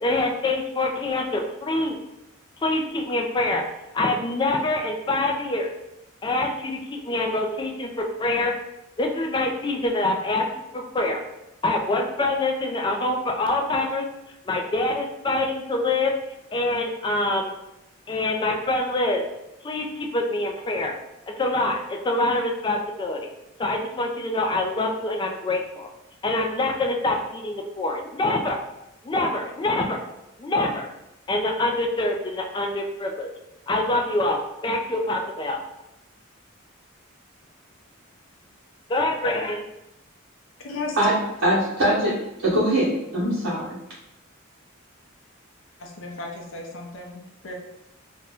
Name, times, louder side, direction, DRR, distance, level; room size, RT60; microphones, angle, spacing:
voice 1, 0.0-1.9 2.6-3.6 3.9-5.7 6.2-8.5 9.0-11.2 11.6-14.1 14.5-16.1 16.5-17.5 18.1-19.2 19.6-20.9 21.4-23.3 23.6-25.9 26.2-28.6 29.0-30.0 30.4-30.9 31.3-33.3 33.7-34.4 34.6-35.6 38.9-39.6, left 2 dB, 20° left, 2 dB, 0.3 m, -25 dB
voice 2, 40.6-41.0 45.8-47.5, left 3 dB, 65° left, 0 dB, 0.6 m, -35 dB
voice 3, 41.4-42.2 42.4-43.8, right 1 dB, 85° right, -11 dB, 0.9 m, -22 dB
2.5 x 2.1 x 3.4 m, 0.90 s
head